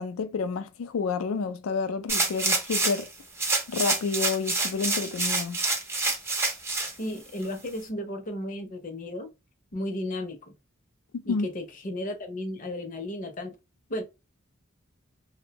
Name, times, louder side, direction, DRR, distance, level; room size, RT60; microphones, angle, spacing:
voice 1, 0.0-3.1 3.7-5.6 11.1-11.5, left 4 dB, 85° left, 0.4 m, -29 dB
sound 1, 2.1-3.1 3.4-6.9 7.4-7.5, right 3 dB, 10° right, 0.5 m, -27 dB
voice 2, 7.0-9.3 9.7-10.4 11.2-13.5 13.9-14.0, left 1 dB, 40° left, 0.6 m, -34 dB
2.6 x 2.1 x 2.8 m
head